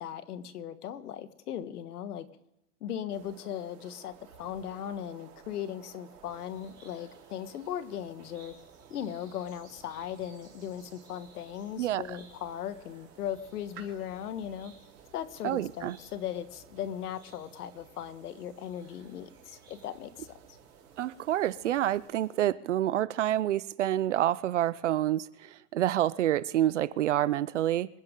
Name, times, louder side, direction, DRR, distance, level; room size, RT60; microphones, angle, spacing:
voice 1, 0.0-2.3 2.8-8.5 8.9-14.7 15.1-20.6, left 10 dB, 70° left, 1.5 m, -38 dB
sound 1, 3.1-22.5, right 8 dB, 90° right, 4.8 m, -56 dB
sound 2, 6.3-22.1, right 3 dB, 10° right, 3.1 m, -60 dB
voice 2, 15.4-16.0 21.0-27.9, right 12 dB, 50° right, 0.5 m, -28 dB
26.5 x 10.5 x 3.7 m
supercardioid pair, 180°, 47 cm